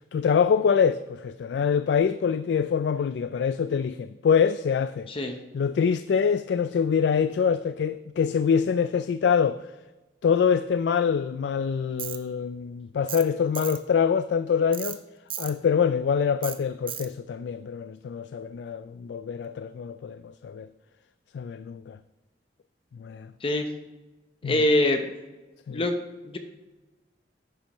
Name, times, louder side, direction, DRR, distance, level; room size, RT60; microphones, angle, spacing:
voice 1, 0.1-5.1 5.5-9.6 10.2-15.0 15.4-20.7 21.3-22.0 23.0-23.3 24.4-24.6 25.7-25.8, left 6 dB, 75° left, 0.3 m, -25 dB
Tools, 12.0-12.2 13.1-13.3 13.5-13.8 14.7-15.0 15.3-15.5 16.4-16.6 16.9-17.1, right 10 dB, 30° right, 0.6 m, -35 dB
voice 2, 24.4-25.1 25.7-26.0 26.2-26.4, left 1 dB, 30° left, 0.8 m, -24 dB
10.5 x 9.6 x 3.0 m
head